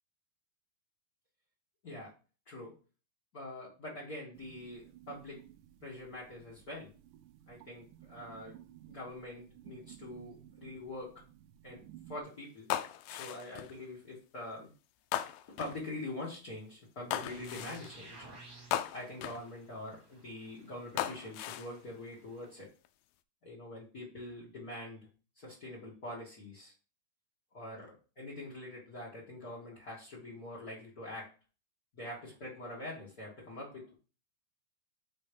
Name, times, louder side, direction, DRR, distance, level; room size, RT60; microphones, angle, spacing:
voice 1, 3.3-5.4 5.8-6.9 7.5-8.6 8.9-11.1 11.6-12.7 13.1-14.7 15.6-18.3 18.9-22.7 23.4-25.1 25.3-26.7 27.5-31.3 31.9-33.9, left 1 dB, 45° left, -4 dB, 1.1 m, -44 dB
sound 1, 4.3-12.2, right 13 dB, 80° right, 2.0 m, -56 dB
sound 2, 12.7-13.8 15.1-15.8 17.1-17.9 18.7-19.5 21.0-21.7 22.4-22.9, left 12 dB, 85° left, 2.0 m, -37 dB
sound 3, 17.1-22.6, right 3 dB, 35° right, 1.5 m, -56 dB
5.7 x 4.3 x 5.1 m, 0.36 s
omnidirectional pair, 4.6 m